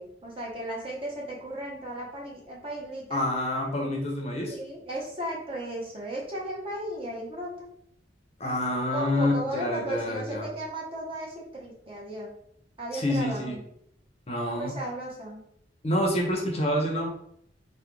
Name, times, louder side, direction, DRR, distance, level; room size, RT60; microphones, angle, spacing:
voice 1, 0.0-3.2 4.5-7.7 8.9-12.3 12.8-13.6 14.5-15.4, right 1 dB, 30° right, -3 dB, 0.6 m, -35 dB
voice 2, 3.1-4.6 8.4-10.5 12.9-13.6 14.3-14.8 15.8-17.1, left 1 dB, 35° left, 0 dB, 0.5 m, -27 dB
2.3 x 2.1 x 3.0 m, 0.70 s
head